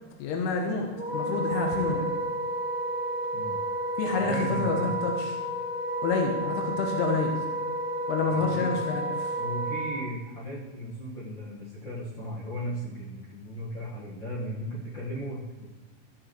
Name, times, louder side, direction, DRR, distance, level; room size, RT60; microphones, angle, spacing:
voice 1, 0.2-2.1 4.0-5.3 6.0-7.3 8.1-9.4, left 4 dB, 80° left, 1 dB, 3.0 m, -28 dB
Wind instrument woodwind instrument, 1.0-10.0, right 1 dB, 10° right, 0.5 m, -31 dB
voice 2, 4.1-4.9 8.3-8.8 9.4-15.7, equal, 50° left, -8 dB, 1.5 m, -36 dB
14.0 x 6.4 x 3.2 m, 1.3 s
omnidirectional pair, 4.7 m